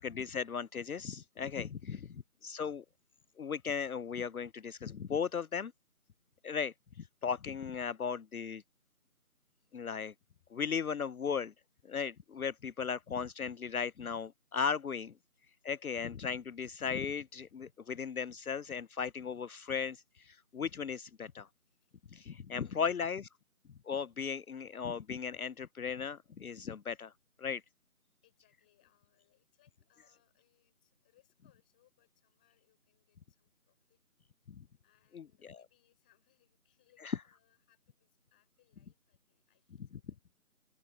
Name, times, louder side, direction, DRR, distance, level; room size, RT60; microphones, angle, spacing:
voice 1, 0.0-2.8 3.4-5.7 6.4-8.6 9.7-10.1 10.5-11.5 11.8-15.1 15.6-21.5 22.1-23.2 23.8-27.1 27.4-27.6 34.5-34.6 35.1-35.6 37.0-37.2, left 6 dB, 75° left, 0.6 m, -37 dB
voice 2, 21.6-23.1 28.2-34.0 34.8-40.2, left 15 dB, 5° left, 5.2 m, -73 dB
open air
figure-of-eight pair, 170°, 44 cm